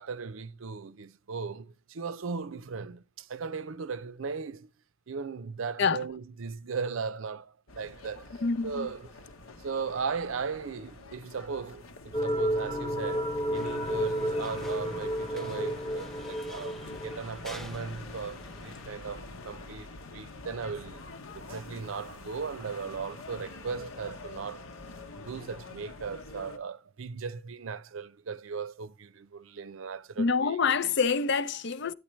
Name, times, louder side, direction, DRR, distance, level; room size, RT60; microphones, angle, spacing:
voice 1, 0.0-4.7 5.1-9.1 9.6-16.8 17.0-21.0 21.3-24.7 25.1-30.6, right 5 dB, 70° right, 0.5 m, -37 dB
sound 1, 7.7-26.6, left 3 dB, 80° left, 1.0 m, -45 dB
voice 2, 8.4-8.9 30.2-31.9, left 5 dB, 55° left, 0.6 m, -26 dB
sound 2, 12.1-17.2, equal, 20° left, 1.0 m, -31 dB
sound 3, 13.5-18.8, left 1 dB, ahead, 0.5 m, -49 dB
10.0 x 9.4 x 3.1 m
head